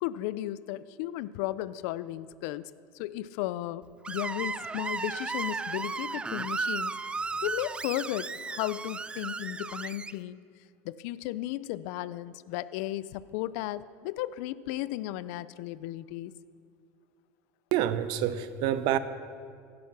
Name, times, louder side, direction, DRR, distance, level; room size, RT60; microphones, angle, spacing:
voice 1, 0.0-7.0 7.4-10.4 10.8-16.3, left 15 dB, 75° left, 17 dB, 0.5 m, -35 dB
Screech, 4.0-10.1, right 4 dB, 10° right, 0.3 m, -35 dB
voice 2, 17.7-19.0, right 11 dB, 60° right, 13 dB, 0.8 m, -27 dB
16.0 x 11.5 x 6.0 m, 2.3 s
supercardioid pair, 130°, 9 cm